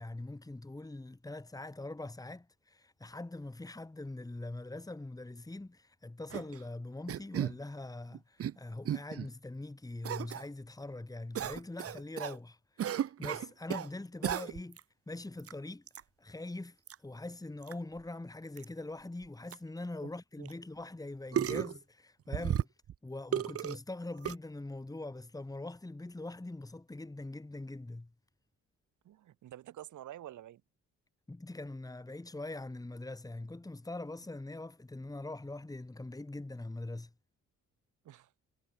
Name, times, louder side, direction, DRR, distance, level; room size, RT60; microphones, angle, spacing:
voice 1, 0.0-14.8 15.1-15.8 16.2-16.8 17.0-22.7 23.0-28.1 31.3-37.1, left 2 dB, 10° left, 2.8 m, -43 dB
sound 1, 6.3-6.6 7.1-7.6 8.1-8.5 8.8-9.3 10.0-10.4 11.3-12.4 12.8-13.9 14.2-14.8 15.4-15.5 15.9-16.0 16.9-17.0 17.6-17.7 18.0-18.1 18.6-18.7 19.2-19.3 19.5-19.6 20.4-20.5 21.3-21.8 22.3-22.9 23.3-23.8 24.2-24.3, right 10 dB, 50° right, 1.0 m, -34 dB
voice 2, 29.0-30.6 38.0-38.3, right 12 dB, 75° right, 4.3 m, -48 dB
cardioid pair, 90°, 30 cm